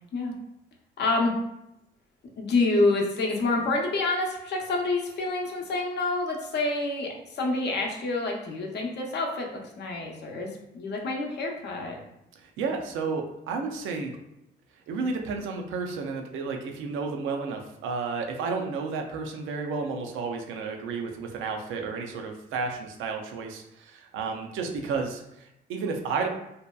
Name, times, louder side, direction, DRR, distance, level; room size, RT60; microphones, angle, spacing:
voice 1, 1.0-1.4 2.4-12.0, left 2 dB, 60° left, 0 dB, 0.6 m, -27 dB
voice 2, 12.4-14.1 14.9-26.3, right 4 dB, 85° right, 3 dB, 0.4 m, -32 dB
2.7 x 2.2 x 2.2 m, 0.85 s
cardioid pair, 90°, 20 cm